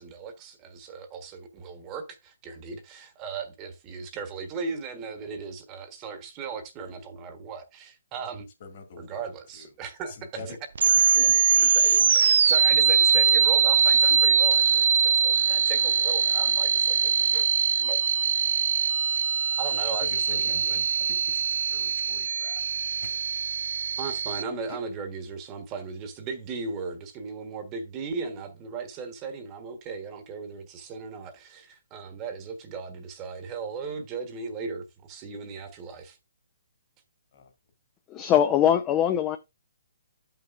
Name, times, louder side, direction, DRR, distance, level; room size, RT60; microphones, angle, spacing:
voice 1, 0.0-8.5 9.0-10.6 11.1-17.5 17.8-18.0 19.6-20.9 24.0-36.2, right 5 dB, 25° right, 1.2 m, -37 dB
voice 2, 8.6-9.3 10.2-10.5 10.9-12.0 20.0-20.6 21.1-21.3 21.7-22.6 23.0-23.2 24.7-24.8 37.3-37.5, left 5 dB, 50° left, 2.2 m, -44 dB
sound 1, 10.7-24.4, right 7 dB, 70° right, 0.3 m, -22 dB
voice 3, 38.1-39.4, left 10 dB, 20° left, 0.5 m, -22 dB
12.5 x 5.7 x 2.5 m
hypercardioid pair, 150°, 0 cm